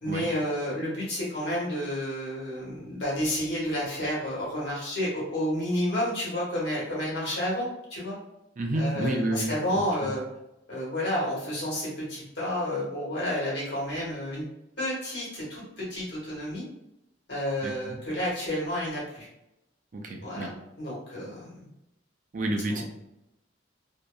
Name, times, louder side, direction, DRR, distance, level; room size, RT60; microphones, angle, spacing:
voice 1, 0.0-8.2 8.7-10.3 10.7-14.4 14.8-16.6 17.3-19.3 20.2-20.5 20.8-21.7 22.7-22.8, equal, 65° left, -6 dB, 1.2 m, -30 dB
voice 2, 8.6-10.1 17.6-18.0 19.9-20.5 22.3-22.8, right 1 dB, 45° right, 1 dB, 0.4 m, -30 dB
2.7 x 2.3 x 2.3 m, 0.87 s
head